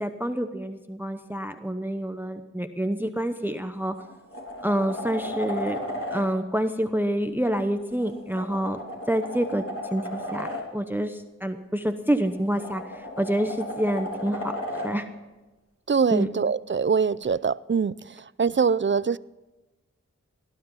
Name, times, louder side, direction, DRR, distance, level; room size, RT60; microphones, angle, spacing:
voice 1, 0.0-3.9 4.6-5.8 6.1-8.8 9.1-14.6 14.8-15.1 16.1-16.3, right 1 dB, 5° right, 8 dB, 0.9 m, -27 dB
sound 1, 3.4-3.5 4.0-6.2 7.9-10.6 12.1-14.9 17.2-17.3, left 1 dB, 50° left, 3.5 m, -35 dB
voice 2, 15.9-19.2, right 5 dB, 40° right, 19 dB, 0.4 m, -24 dB
18.5 x 11.5 x 5.6 m, 1.1 s
wide cardioid pair, 50°, 30 cm